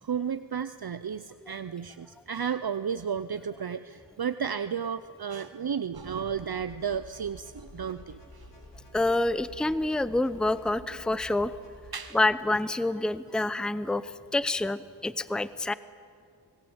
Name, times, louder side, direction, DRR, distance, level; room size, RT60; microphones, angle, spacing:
voice 1, 0.0-8.5 11.9-12.2, right 7 dB, 65° right, 12 dB, 0.6 m, -33 dB
sound 1, 5.9-11.9, left 1 dB, 90° left, 4.1 m, -50 dB
voice 2, 8.9-11.5 12.1-15.7, left 2 dB, ahead, 15 dB, 0.6 m, -27 dB
26.0 x 19.0 x 7.9 m, 2.3 s
wide cardioid pair, 40°, 41 cm